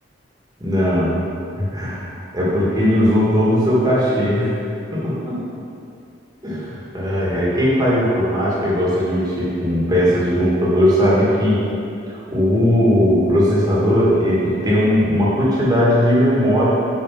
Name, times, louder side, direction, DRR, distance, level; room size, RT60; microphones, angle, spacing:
voice 1, 0.6-1.3 1.6-4.6 4.9-5.4 6.4-11.6 12.3-16.7, equal, 20° right, -7 dB, 1.7 m, -18 dB
7.3 x 4.7 x 5.8 m, 2.5 s
head